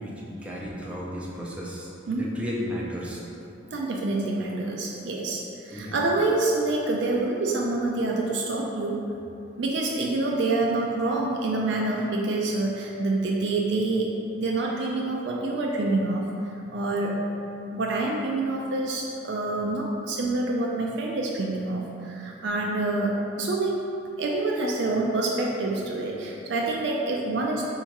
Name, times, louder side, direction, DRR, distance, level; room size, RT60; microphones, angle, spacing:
voice 1, 0.0-1.9 2.1-3.2 5.7-6.0, equal, 5° right, -5 dB, 0.5 m, -34 dB
voice 2, 3.7-9.0 9.6-16.3 16.7-17.2 17.7-23.8 24.2-27.6, right 2 dB, 60° right, -2 dB, 0.4 m, -27 dB
3.6 x 2.8 x 4.5 m, 2.8 s
head